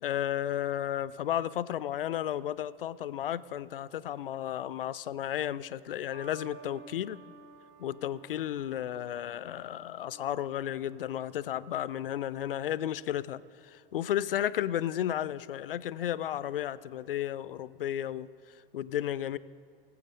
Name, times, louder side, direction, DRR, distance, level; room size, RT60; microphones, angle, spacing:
voice 1, 0.0-7.2 7.8-18.3 18.7-19.4, left 11 dB, 70° left, 18 dB, 0.4 m, -33 dB
sound 1, 6.1-12.6 13.5-13.9, right 4 dB, 40° right, 3.7 m, -54 dB
18.5 x 7.9 x 5.3 m, 2.4 s
figure-of-eight pair, 90°, 29 cm